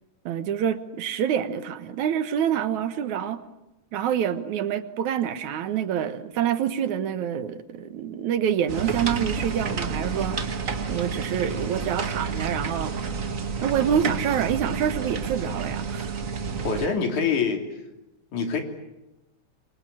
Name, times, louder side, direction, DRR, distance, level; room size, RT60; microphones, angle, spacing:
voice 1, 0.3-3.4 3.9-10.6 10.9-13.0 13.6-16.1, right 9 dB, 80° right, 2.7 m, -27 dB
sound 1, 8.7-16.9, right 5 dB, 40° right, 1.4 m, -30 dB
voice 2, 16.6-17.7 18.3-18.6, left 5 dB, 90° left, 4.5 m, -25 dB
26.5 x 23.5 x 8.8 m
omnidirectional pair, 3.3 m